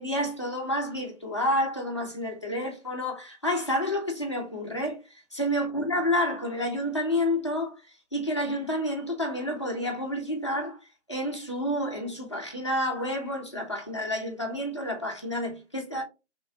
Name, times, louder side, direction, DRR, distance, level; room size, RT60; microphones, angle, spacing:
voice 1, 0.0-10.8 11.1-16.0, left 1 dB, 25° left, 0.5 m, -29 dB
3.1 x 2.6 x 2.5 m
figure-of-eight pair, 165°, 35 cm